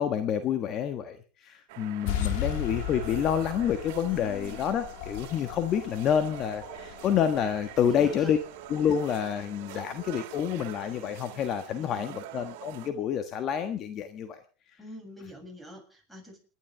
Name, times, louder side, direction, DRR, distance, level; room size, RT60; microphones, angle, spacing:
voice 1, 0.0-8.4 8.7-14.4, left 8 dB, 45° left, 9 dB, 1.4 m, -28 dB
sound 1, 1.7-12.9, right 12 dB, 65° right, 2.2 m, -45 dB
sound 2, 2.0-9.2, left 8 dB, 70° left, 1.9 m, -37 dB
voice 2, 4.1-4.6 7.9-8.4 11.7-12.2 14.8-16.4, equal, ahead, 3 dB, 7.0 m, -45 dB
29.0 x 11.0 x 3.4 m, 0.35 s
supercardioid pair, 110°, 0 cm